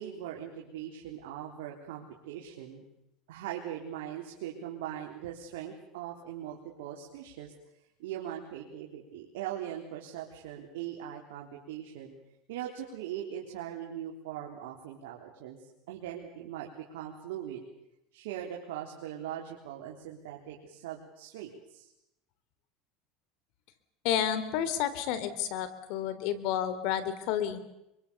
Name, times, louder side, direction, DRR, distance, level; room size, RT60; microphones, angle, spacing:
voice 1, 0.0-2.8 3.3-7.5 8.0-12.1 12.5-15.6 15.9-17.6 18.1-21.9, right 10 dB, 85° right, 0 dB, 3.7 m, -40 dB
voice 2, 24.0-27.6, left 10 dB, 65° left, 13 dB, 3.1 m, -30 dB
25.5 x 24.0 x 7.0 m, 0.85 s
supercardioid pair, 120°, 0 cm